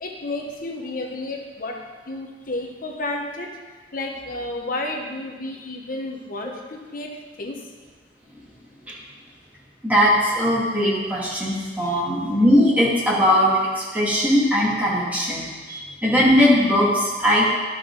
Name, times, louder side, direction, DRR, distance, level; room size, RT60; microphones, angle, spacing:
voice 1, 0.0-7.7 11.5-12.0 15.4-15.5, left 2 dB, 50° left, 1 dB, 1.0 m, -32 dB
voice 2, 9.8-17.5, equal, 10° right, -7 dB, 2.4 m, -19 dB
12.0 x 5.3 x 4.0 m, 1.4 s
head